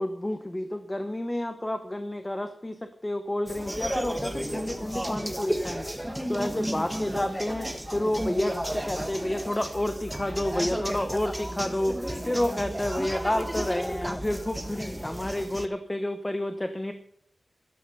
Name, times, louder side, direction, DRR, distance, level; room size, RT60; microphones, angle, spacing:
voice 1, 0.0-5.9 6.3-7.7 7.9-12.0 12.3-16.9, left 1 dB, 15° left, 8 dB, 1.0 m, -30 dB
sound 1, 3.5-15.7, equal, 5° right, 1.3 m, -33 dB
12.5 x 12.0 x 5.5 m, 0.67 s
wide cardioid pair, 115°, 0 cm